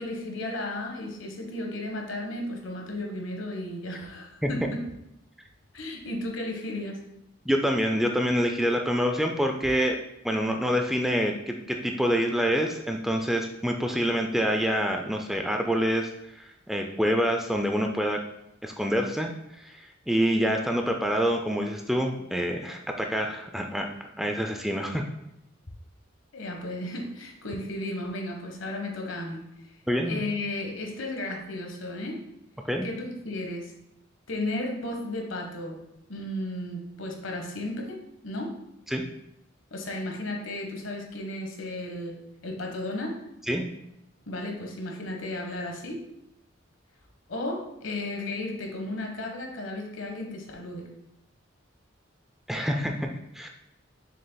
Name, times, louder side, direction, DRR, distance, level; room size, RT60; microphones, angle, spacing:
voice 1, 0.0-4.8 5.7-7.0 26.3-29.4 30.0-32.2 32.8-33.7 34.3-35.8 36.1-38.5 39.7-43.1 44.3-46.0 47.3-50.9, left 1 dB, 75° left, 2 dB, 1.2 m, -34 dB
voice 2, 7.5-10.0 10.2-18.2 18.6-19.3 19.6-23.9 24.2-25.0 29.9-30.2 32.7-32.9 38.9-39.0 43.5-43.6 52.5-53.5, equal, ahead, 3 dB, 0.4 m, -26 dB
6.8 x 6.4 x 2.2 m, 0.85 s
head